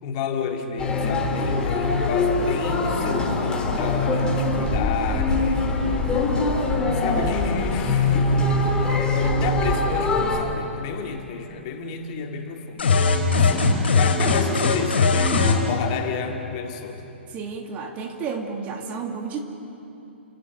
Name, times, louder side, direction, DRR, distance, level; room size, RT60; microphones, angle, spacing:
voice 1, 0.0-5.8 6.3-8.3 8.9-17.0, left 6 dB, 35° left, 3 dB, 2.6 m, -31 dB
sound 1, 0.8-10.4, left 2 dB, 10° left, 3.4 m, -23 dB
sound 2, 0.9-9.9, left 4 dB, 75° left, 3.8 m, -31 dB
sound 3, 12.8-15.6, left 4 dB, 60° left, 4.9 m, -19 dB
voice 2, 17.3-19.5, right 5 dB, 25° right, 3 dB, 2.4 m, -31 dB
30.0 x 26.5 x 6.9 m, 2.9 s
figure-of-eight pair, 115°, 6 cm